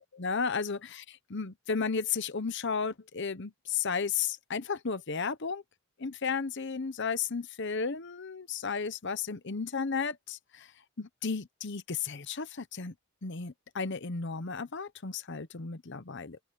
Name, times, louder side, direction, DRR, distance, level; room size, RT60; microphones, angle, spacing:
voice 1, 0.0-5.6 6.0-10.7 11.0-12.9 13.2-16.4, left 5 dB, 55° left, 0.9 m, -34 dB
open air
head